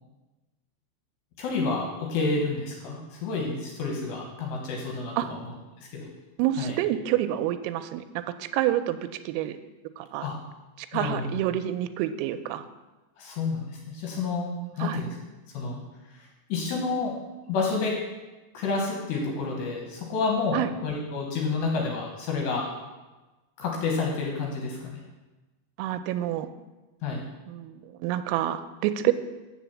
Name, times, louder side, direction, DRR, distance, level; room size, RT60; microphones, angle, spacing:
voice 1, 1.4-5.4 5.8-6.1 6.6-6.8 10.2-10.3 10.9-11.4 13.2-14.5 14.8-15.2 15.5-15.8 16.1-17.2 17.5-18.0 18.5-22.7 23.6-25.0 27.0-27.2, left 4 dB, 70° left, 0 dB, 3.0 m, -29 dB
voice 2, 6.4-9.6 10.0-10.3 10.8-12.7 14.8-15.1 20.5-20.7 25.8-26.5 27.5-29.1, right 12 dB, 90° right, 11 dB, 3.3 m, -28 dB
8.4 x 6.6 x 7.1 m, 1.2 s
omnidirectional pair, 5.9 m